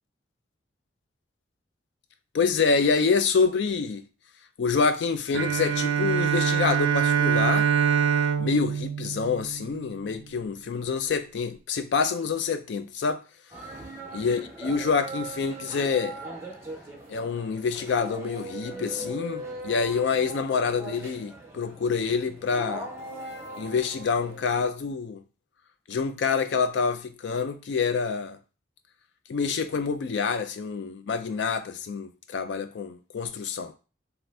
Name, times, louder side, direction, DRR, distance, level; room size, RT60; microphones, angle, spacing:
voice 1, 2.3-4.0 4.6-7.7 8.4-13.2 14.1-16.2 17.1-22.9 23.6-25.2 25.9-28.4 29.3-33.8, left 5 dB, 70° left, 0.4 m, -27 dB
Bowed string instrument, 5.3-10.1, right 7 dB, 85° right, 0.4 m, -24 dB
sound 1, 13.5-24.6, right 2 dB, 15° right, 0.6 m, -40 dB
2.7 x 2.5 x 3.2 m
head